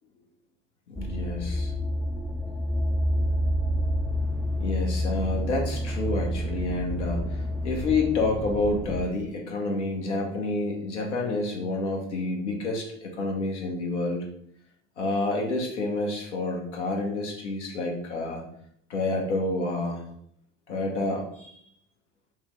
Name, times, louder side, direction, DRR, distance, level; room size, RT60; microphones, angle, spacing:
voice 1, 0.9-1.7 4.6-14.3 15.0-18.4 18.9-20.0 20.7-21.6, left 2 dB, 85° left, 0 dB, 1.0 m, -29 dB
sound 1, 1.0-9.1, equal, 5° left, 0.4 m, -28 dB
5.6 x 2.2 x 3.1 m, 0.68 s
hypercardioid pair, 65°, 34 cm